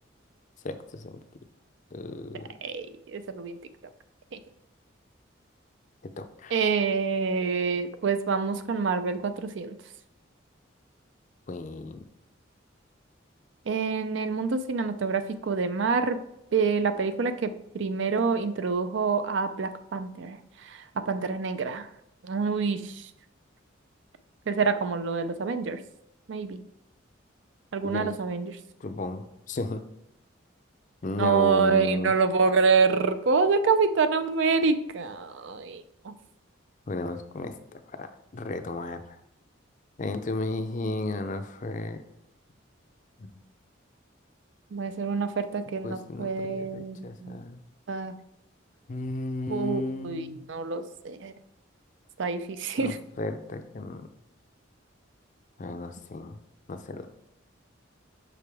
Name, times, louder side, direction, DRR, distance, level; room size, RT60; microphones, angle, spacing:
voice 1, 0.6-1.2 1.9-2.5 6.2-6.6 11.5-12.0 27.8-28.2 28.8-29.8 31.0-32.1 36.9-38.1 38.3-39.2 40.0-42.0 43.2-43.3 45.8-47.6 48.9-50.4 52.8-54.1 55.6-56.4 56.7-57.1, left 2 dB, 40° left, 8 dB, 0.4 m, -34 dB
voice 2, 3.1-3.6 4.3-4.4 6.5-9.8 13.7-16.2 16.5-20.4 21.1-21.9 22.2-22.9 24.5-25.8 26.3-26.6 27.7-28.5 31.2-36.1 44.7-47.4 47.9-48.1 49.5-51.3 52.2-53.0, right 5 dB, 65° right, 11 dB, 0.4 m, -26 dB
5.9 x 4.9 x 3.4 m, 0.83 s
head